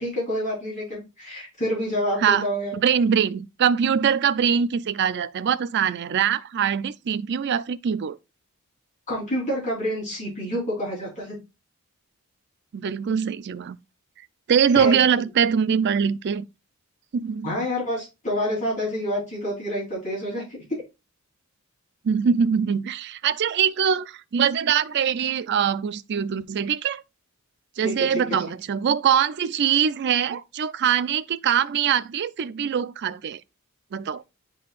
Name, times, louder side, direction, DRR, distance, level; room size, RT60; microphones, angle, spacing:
voice 1, 0.0-2.7 9.1-11.4 14.7-15.0 17.4-20.7 27.8-28.2, equal, 35° left, 3.5 m, -28 dB
voice 2, 2.7-8.2 12.7-13.8 14.5-16.4 17.1-17.5 22.0-27.0 27.8-33.4 33.9-34.2, right 7 dB, 50° right, 0.4 m, -23 dB
10.0 x 3.8 x 2.4 m
head